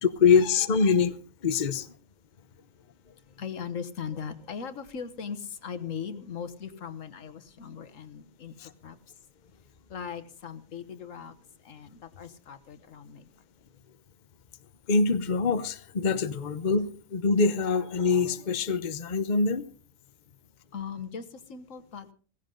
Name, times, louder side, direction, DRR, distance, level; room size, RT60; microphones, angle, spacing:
voice 1, 0.0-1.2 1.4-1.9 8.6-8.7 14.9-19.7, left 5 dB, 40° left, 0.9 m, -24 dB
voice 2, 3.1-9.1 9.9-11.3 11.6-13.4 20.7-22.1, left 7 dB, 75° left, 1.5 m, -39 dB
17.0 x 15.5 x 3.9 m
omnidirectional pair, 1.3 m